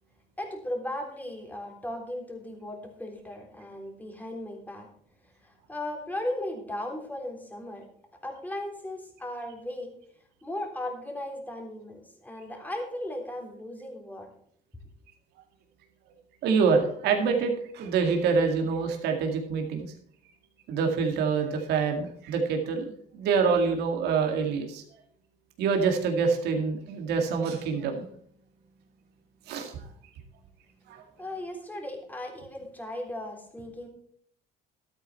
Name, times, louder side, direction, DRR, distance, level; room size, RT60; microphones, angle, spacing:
voice 1, 0.4-4.9 5.4-7.8 8.2-9.9 10.4-14.3 31.2-33.9, left 1 dB, 10° left, 2 dB, 3.4 m, -36 dB
voice 2, 16.4-19.9 20.7-24.8 25.6-28.0 29.5-29.7 30.9-31.0, right 5 dB, 80° right, 3 dB, 2.1 m, -26 dB
13.0 x 9.1 x 4.3 m, 0.62 s
cardioid pair, 110°, 17 cm